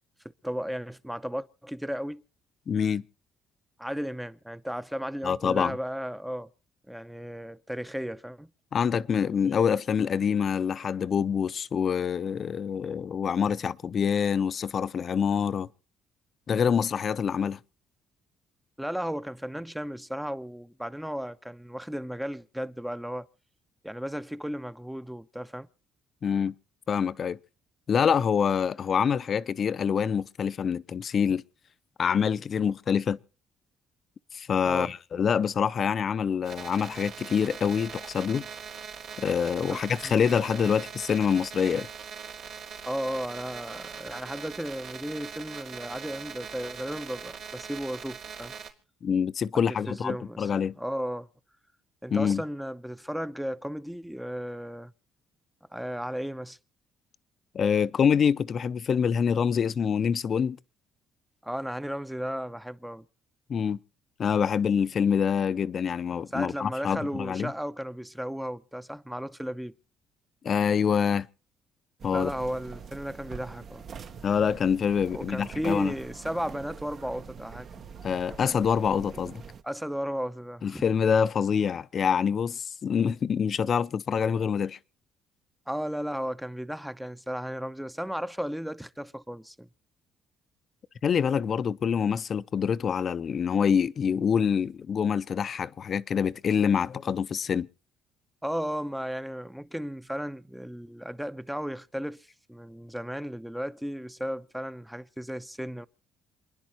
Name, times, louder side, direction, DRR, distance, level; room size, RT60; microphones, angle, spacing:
voice 1, 0.4-2.2 3.8-6.5 6.9-8.5 18.8-23.3 23.8-25.7 34.6-34.9 39.7-39.8 40.0-40.1 42.9-48.5 49.7-51.3 52.0-54.9 55.7-56.6 61.4-63.0 66.3-69.7 72.1-73.9 75.1-77.8 79.6-80.8 85.7-89.7 98.4-105.9, equal, 5° right, 0.7 m, -34 dB
voice 2, 2.7-3.0 5.2-5.8 8.7-15.7 16.5-17.6 26.2-26.5 26.9-27.4 27.9-31.4 32.0-33.2 34.3-38.5 39.2-41.9 49.0-50.7 52.1-52.4 57.5-60.6 63.5-63.8 64.2-67.5 70.4-71.3 72.0-72.3 74.2-75.9 78.0-79.4 80.6-84.8 91.0-97.7, left 7 dB, 45° left, 0.6 m, -26 dB
sound 1, 36.4-48.7, right 7 dB, 80° right, 3.8 m, -41 dB
sound 2, 72.0-79.6, right 6 dB, 50° right, 1.2 m, -44 dB
27.5 x 10.5 x 3.0 m
cardioid pair, 100°, 0 cm